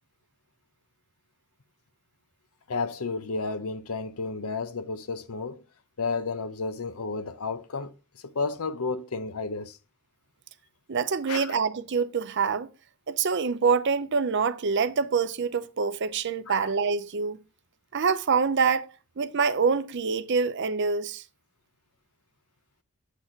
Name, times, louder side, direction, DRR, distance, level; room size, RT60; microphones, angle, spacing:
voice 1, 2.7-5.6 6.0-9.8 11.3-11.5 16.5-16.7, left 4 dB, 80° left, 0.7 m, -32 dB
voice 2, 10.9-12.7 13.1-17.4 17.9-18.9 19.2-21.2, right 5 dB, 55° right, 0.6 m, -25 dB
8.2 x 4.1 x 4.3 m
head